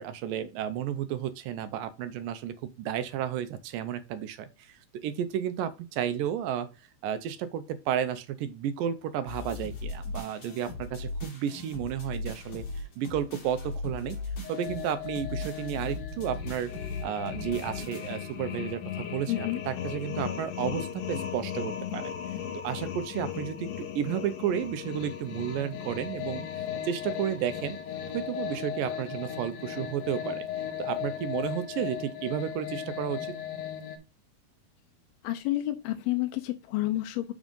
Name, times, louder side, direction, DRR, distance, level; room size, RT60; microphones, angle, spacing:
voice 1, 0.0-6.7 7.0-12.6 13.0-14.2 14.5-16.7 17.0-22.1 22.6-23.7 24.0-26.4 26.8-27.8 28.1-30.5 30.8-33.3, right 9 dB, 75° right, 2.1 m, -32 dB
sound 1, 9.3-18.4, left 3 dB, 50° left, 3.5 m, -38 dB
sound 2, 14.4-34.0, left 9 dB, 65° left, 2.5 m, -37 dB
voice 2, 19.3-19.6 35.2-37.3, left 16 dB, 85° left, 2.5 m, -30 dB
7.3 x 3.7 x 5.2 m
omnidirectional pair, 4.4 m